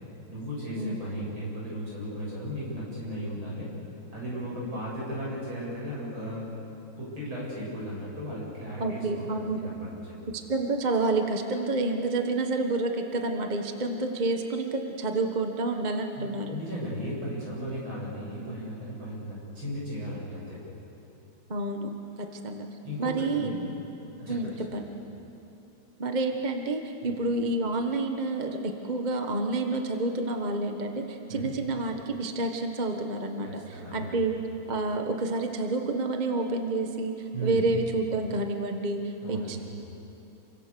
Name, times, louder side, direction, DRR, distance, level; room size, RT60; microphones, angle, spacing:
voice 1, 0.3-3.7 4.1-6.5 7.0-10.0 16.2-20.6 22.8-23.6 24.2-24.9 31.3-31.5 33.4-34.2 37.3-37.6 39.2-39.6, equal, 65° right, -5 dB, 9.0 m, -36 dB
voice 2, 8.8-9.7 10.5-16.5 18.4-18.7 21.5-21.9 22.2-22.7 23.0-23.5 24.3-24.8 26.0-33.6 33.9-34.4 34.7-37.1 37.4-39.0 39.3-39.6, right 2 dB, 25° right, 4 dB, 1.2 m, -29 dB
29.0 x 24.5 x 7.0 m, 2.9 s
omnidirectional pair, 2.4 m